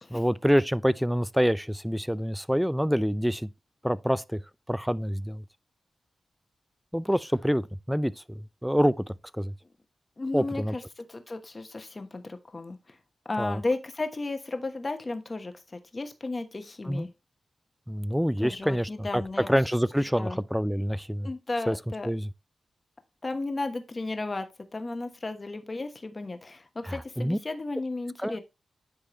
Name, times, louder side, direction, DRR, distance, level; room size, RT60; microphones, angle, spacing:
voice 1, 0.1-3.5 3.8-4.4 4.7-5.4 6.9-8.9 9.3-9.5 10.3-10.8 13.4-13.6 16.8-17.1 17.9-21.3 21.7-21.8 22.0-22.3 26.8-27.4 28.2-28.4, equal, ahead, 0.4 m, -26 dB
voice 2, 10.2-12.8 13.2-15.5 15.9-17.1 18.4-19.5 20.2-20.4 21.2-22.1 23.2-24.5 24.7-28.4, left 2 dB, 40° left, 1.2 m, -34 dB
9.9 x 3.6 x 3.1 m
cardioid pair, 45°, 0 cm